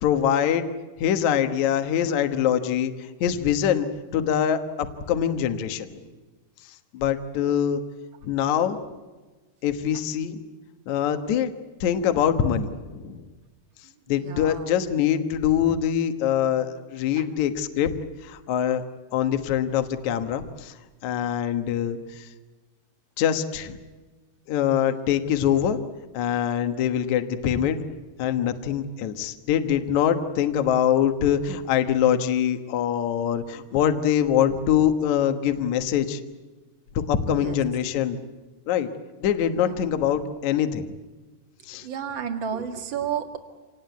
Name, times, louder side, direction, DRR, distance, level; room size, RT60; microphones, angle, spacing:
voice 1, 0.0-0.6 1.0-2.9 3.2-3.9 4.1-6.0 6.9-7.8 8.2-8.8 9.6-10.4 10.9-11.5 11.8-13.2 14.1-17.9 18.2-18.8 19.1-20.7 21.0-22.3 23.2-23.8 24.5-25.8 26.1-27.8 28.2-36.2 37.1-38.2 38.7-38.9 39.2-40.9 41.7-41.9, left 9 dB, 60° left, 8 dB, 2.2 m, -24 dB
voice 2, 14.2-14.7 17.2-17.3 37.3-37.6 39.6-39.8 41.8-43.4, right 8 dB, 40° right, 5 dB, 1.9 m, -32 dB
27.5 x 19.0 x 9.3 m, 1.2 s
omnidirectional pair, 4.5 m